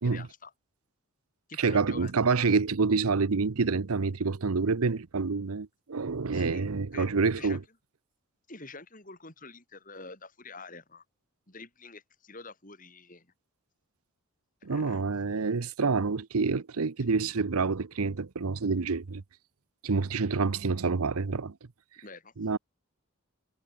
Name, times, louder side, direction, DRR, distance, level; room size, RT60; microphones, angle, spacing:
voice 1, 0.0-0.5 1.5-2.1 6.3-7.1 7.4-7.6 8.5-11.0 11.5-13.3 14.7-15.0 17.0-17.1 22.0-22.3, left 3 dB, 35° left, 5.6 m, -47 dB
voice 2, 1.6-7.6 14.6-19.2 19.8-21.5 22.4-22.6, right 4 dB, 85° right, 0.8 m, -27 dB
head